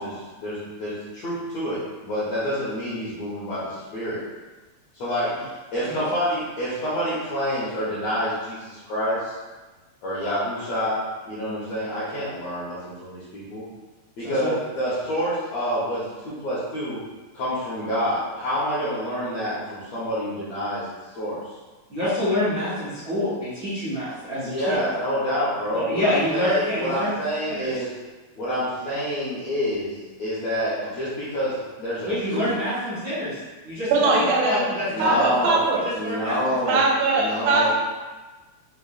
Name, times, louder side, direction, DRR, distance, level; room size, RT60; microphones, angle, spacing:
voice 1, 0.0-4.2 4.9-9.4 10.0-11.0 11.2-13.7 14.2-17.0 17.3-20.9 21.1-21.4 24.4-27.9 28.4-29.9 30.2-32.5 34.9-35.7 35.9-36.8 37.1-37.7, equal, 75° left, -10 dB, 1.5 m, -27 dB
voice 2, 14.2-14.5 21.9-24.8 25.7-27.1 27.6-27.7 32.0-33.4 33.6-35.5 36.0-36.6, left 1 dB, 70° right, -13 dB, 0.9 m, -26 dB
voice 3, 33.9-34.7 35.0-35.8 36.7-37.7, right 3 dB, 85° right, -3 dB, 2.5 m, -21 dB
6.4 x 2.2 x 2.4 m, 1.2 s
omnidirectional pair, 4.1 m